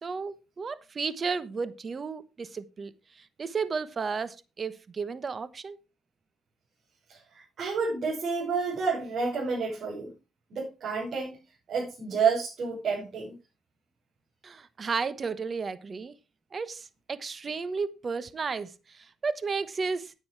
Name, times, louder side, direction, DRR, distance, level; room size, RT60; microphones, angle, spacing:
voice 1, 0.0-5.8 14.4-16.1 16.5-20.1, right 5 dB, 40° right, 15 dB, 1.1 m, -33 dB
voice 2, 7.1-10.1 10.5-11.4 11.7-13.4, right 5 dB, 55° right, -4 dB, 5.9 m, -29 dB
9.8 x 8.7 x 4.7 m, 0.29 s
cardioid pair, 90°, 0 cm